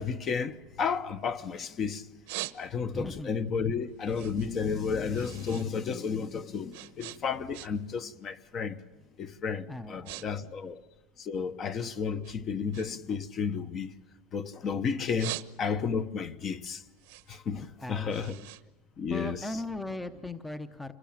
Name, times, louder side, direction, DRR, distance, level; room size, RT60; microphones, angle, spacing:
voice 1, 0.0-2.1 2.5-8.8 9.2-10.8 11.2-13.9 14.3-16.8 17.3-18.3 19.0-19.4, left 6 dB, 30° left, 1.0 m, -32 dB
sound 1, 0.5-1.6 2.0-3.1 3.5-5.7 6.0-8.0 8.3-8.6 9.2-9.4 9.7-10.3 10.5-11.8 12.2-14.5 14.9-16.0 16.4-19.5, right 19 dB, 80° right, 1.1 m, -43 dB
voice 2, 2.9-3.3 9.7-10.6 17.6-18.5 19.1-20.9, left 2 dB, 5° left, 0.8 m, -39 dB
27.5 x 20.0 x 8.8 m
cardioid pair, 165°, 0 cm